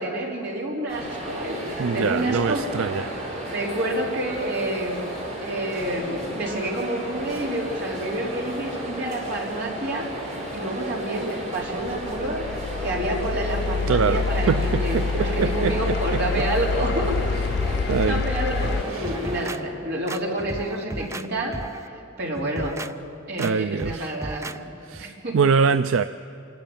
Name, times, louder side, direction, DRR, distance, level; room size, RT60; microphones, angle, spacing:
voice 1, 0.0-3.0 3.5-5.0 5.4-10.1 10.5-17.1 18.1-21.6 21.9-22.8 23.3-24.6 25.0-25.4, right 1 dB, 55° right, 4.0 m, -29 dB
sound 1, 0.9-19.5, right 1 dB, 35° right, 4.8 m, -33 dB
voice 2, 1.8-3.2 13.9-15.1 15.4-16.4 17.9-18.2 18.9-19.2 23.4-24.1 24.8-26.0, right 5 dB, 80° right, 0.4 m, -24 dB
sound 2, 11.6-18.8, left 5 dB, 55° left, 0.4 m, -27 dB
sound 3, 18.6-19.6 20.1-21.3 21.5-21.9 22.3-22.9 23.4-23.5 23.8-24.6 24.9-25.0, right 2 dB, 15° right, 0.4 m, -35 dB
27.0 x 12.5 x 9.0 m
head